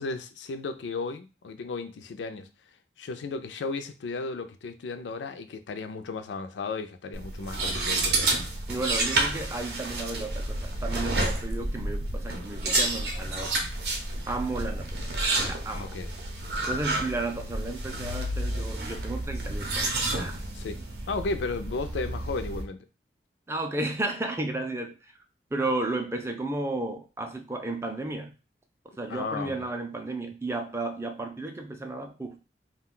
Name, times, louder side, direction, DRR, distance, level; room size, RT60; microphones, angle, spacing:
voice 1, 0.0-2.5 3.0-8.3 15.7-16.1 20.5-20.8 21.1-22.8 29.1-29.5, left 3 dB, 90° left, 9 dB, 0.4 m, -34 dB
sound 1, 7.1-22.6, right 2 dB, 65° right, 0.6 m, -30 dB
voice 2, 8.7-13.6 14.3-15.1 15.4-15.9 16.7-20.4 23.5-25.1 25.5-28.4 29.0-32.4, right 2 dB, 15° right, 4 dB, 0.3 m, -33 dB
2.4 x 2.2 x 3.7 m, 0.30 s
head